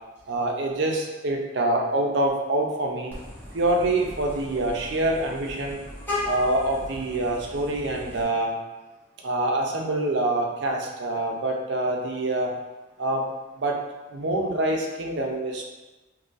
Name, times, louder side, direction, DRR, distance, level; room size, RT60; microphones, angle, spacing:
voice 1, 0.3-3.1 3.5-5.8 6.2-8.5 9.2-12.5 13.0-13.3 13.6-13.8 14.1-15.6, right 1 dB, 60° right, 1 dB, 0.5 m, -25 dB
Vehicle horn car horn honking, 3.1-8.2, left 1 dB, 10° left, 0.9 m, -36 dB
2.7 x 2.5 x 3.8 m, 1.1 s
head